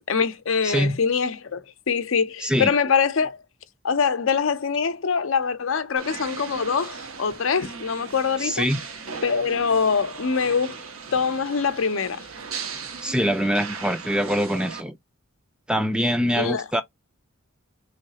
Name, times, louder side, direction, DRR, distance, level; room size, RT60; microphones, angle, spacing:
voice 1, 0.1-3.4 3.8-8.7 9.2-10.8 11.1-12.2 16.4-16.7, left 5 dB, 70° left, 0.6 m, -24 dB
voice 2, 0.6-1.0 2.4-2.7 8.4-8.8 13.0-15.0 15.7-16.8, equal, 5° right, 0.4 m, -23 dB
sound 1, 6.0-14.8, right 5 dB, 90° right, 1.1 m, -37 dB
3.9 x 3.2 x 2.8 m
head